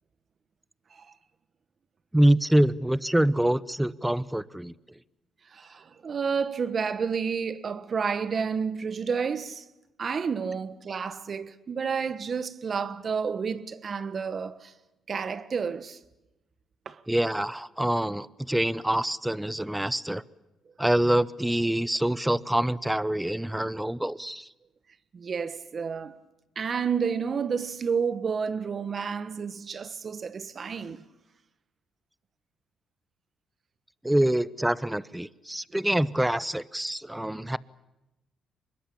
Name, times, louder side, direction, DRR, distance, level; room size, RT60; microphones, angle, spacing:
voice 1, 2.1-4.7 17.1-20.2 20.8-24.5 34.0-37.6, right 1 dB, 5° right, 0.8 m, -25 dB
voice 2, 5.5-9.6 10.0-14.7 15.1-16.0 16.8-17.0 25.1-26.1 26.5-31.0 37.1-37.2, right 6 dB, 45° right, 1.5 m, -30 dB
24.5 x 21.5 x 8.5 m
cardioid pair, 90°, 0 cm